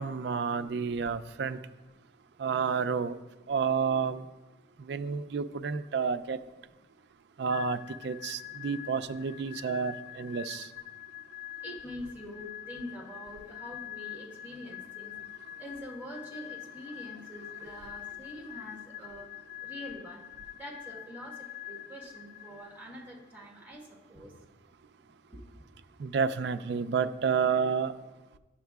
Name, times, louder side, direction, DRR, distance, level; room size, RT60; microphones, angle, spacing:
voice 1, 0.0-1.6 2.4-3.2 3.5-4.2 4.8-6.4 7.4-7.8 8.0-10.7 26.0-27.9, right 6 dB, 55° right, 11 dB, 0.3 m, -30 dB
sound 1, 7.5-23.1, left 13 dB, 35° left, 0.3 m, -45 dB
voice 2, 11.6-15.1 15.6-19.3 19.6-20.2 20.6-23.8 24.1-24.3 25.3-25.4, equal, 10° right, -2 dB, 1.2 m, -45 dB
11.5 x 7.2 x 2.3 m, 1.1 s
head